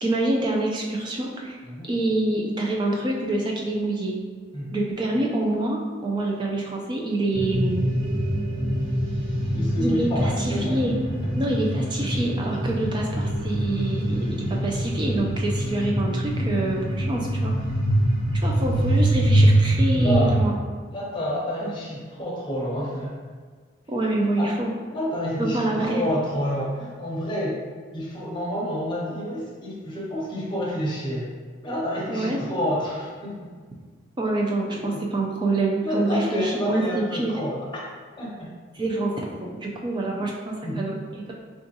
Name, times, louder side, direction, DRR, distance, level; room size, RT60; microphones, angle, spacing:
voice 1, 0.0-1.6 1.9-4.1 4.7-7.9 9.8-11.0 11.4-17.5 18.3-20.6 21.6-21.7 23.9-24.7 25.4-26.0 32.1-32.4 34.2-37.3 38.7-41.3, right 2 dB, 20° right, -1 dB, 0.3 m, -26 dB
sound 1, 7.3-20.5, right 1 dB, 70° right, 1.1 m, -24 dB
voice 2, 9.5-10.9 20.0-20.3 20.9-23.1 24.4-24.5 24.9-27.6 27.9-31.3 31.6-33.5 34.7-35.0 35.8-37.9 38.2-38.5 40.2-40.3 40.6-40.9, left 1 dB, 25° left, -5 dB, 0.6 m, -29 dB
3.6 x 2.4 x 2.7 m, 1.5 s
head